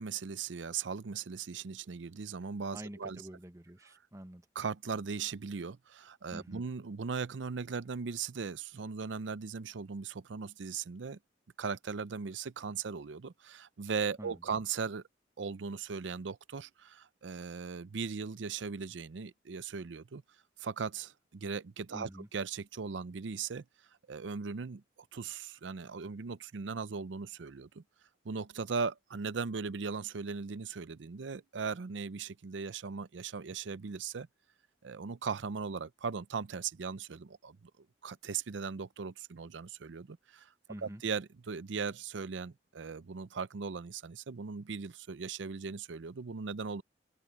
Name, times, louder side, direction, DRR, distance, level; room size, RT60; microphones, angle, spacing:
voice 1, 0.0-3.2 4.5-11.2 11.6-15.0 15.4-20.2 20.6-23.6 24.1-24.8 25.1-27.8 28.2-34.3 34.8-37.7 38.0-40.5 40.8-46.8, right 5 dB, 85° right, 0.6 m, -38 dB
voice 2, 2.7-4.5 6.3-6.6 14.2-14.6 21.9-22.3 40.7-41.0, right 1 dB, 15° right, 1.2 m, -47 dB
open air
head